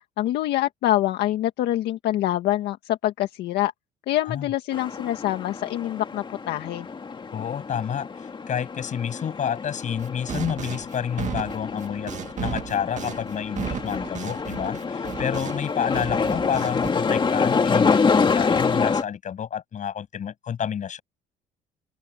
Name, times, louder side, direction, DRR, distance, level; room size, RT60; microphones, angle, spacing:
voice 1, 0.2-3.7 4.1-6.9, left 14 dB, 80° left, 1.8 m, -25 dB
sound 1, 4.7-19.0, left 5 dB, 30° left, 2.1 m, -27 dB
voice 2, 7.3-21.0, left 8 dB, 45° left, 7.2 m, -29 dB
sound 2, 10.0-15.7 15.9-16.9, right 8 dB, 45° right, 2.0 m, -34 dB
open air
cardioid pair, 110°, 17 cm